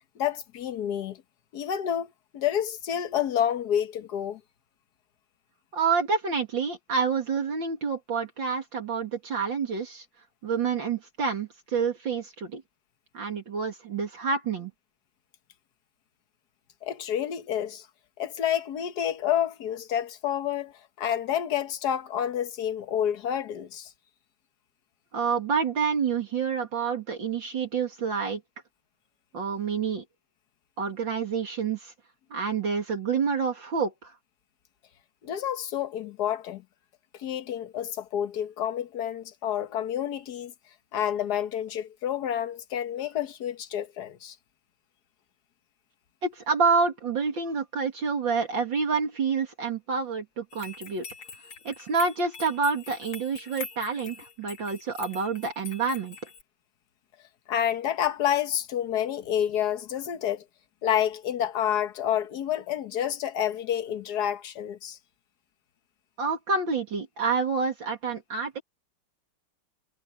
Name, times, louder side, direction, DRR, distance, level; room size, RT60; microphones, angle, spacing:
voice 1, 0.2-1.2 1.5-4.4 16.8-17.9 18.2-20.7 21.0-23.9 35.2-36.6 37.2-40.5 40.9-44.4 57.5-60.4 60.8-65.0, left 10 dB, 55° left, 1.6 m, -29 dB
voice 2, 5.7-10.0 10.4-12.6 13.1-14.7 25.1-28.4 29.3-30.0 30.8-31.9 32.3-34.1 46.2-51.1 51.6-56.2 66.2-68.6, right 5 dB, 65° right, 3.0 m, -28 dB
sound 1, 50.5-56.4, left 5 dB, 85° left, 3.4 m, -44 dB
omnidirectional pair, 2.3 m